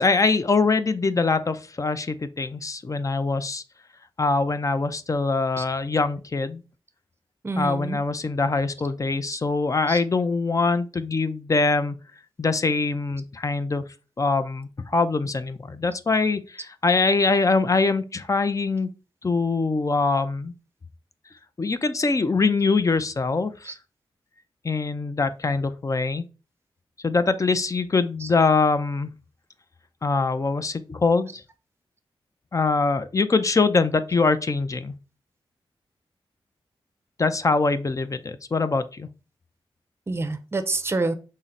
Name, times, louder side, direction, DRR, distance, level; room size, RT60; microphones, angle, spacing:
voice 1, 0.0-3.6 4.2-6.6 7.6-12.0 12.4-13.8 14.2-18.9 19.2-20.5 21.6-23.7 24.6-26.2 27.0-29.1 30.0-31.3 32.5-34.9 37.2-39.1, left 3 dB, 35° left, 0.5 m, -23 dB
voice 2, 7.4-8.0 9.9-10.0 23.6-23.7 28.2-28.3 40.1-41.1, right 3 dB, 25° right, 0.6 m, -27 dB
5.6 x 2.1 x 3.7 m
cardioid pair, 70°, 10 cm